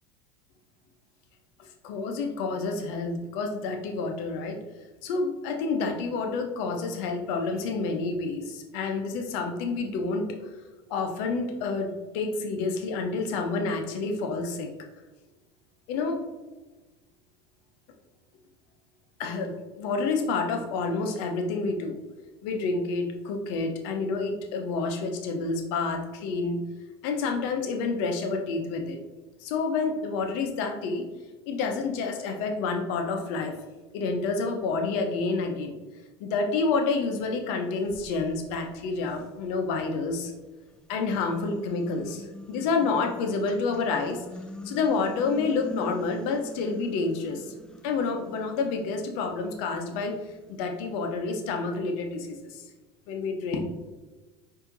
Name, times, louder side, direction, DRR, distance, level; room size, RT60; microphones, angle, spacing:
voice 1, 1.6-4.6 5.0-10.3 10.9-14.7 15.9-16.2 19.2-22.0 22.4-26.6 27.0-29.0 29.4-31.1 31.5-33.5 33.9-35.7 36.2-40.3 40.9-44.3 44.6-47.5 47.8-50.2 50.5-52.6 53.1-53.6, left 4 dB, 65° left, 4 dB, 0.8 m, -29 dB
sound 1, 37.1-37.2 37.8-40.1 40.7-52.0, left 1 dB, 5° left, 0.5 m, -44 dB
4.4 x 2.8 x 3.9 m, 1.2 s
hypercardioid pair, 85°, 15 cm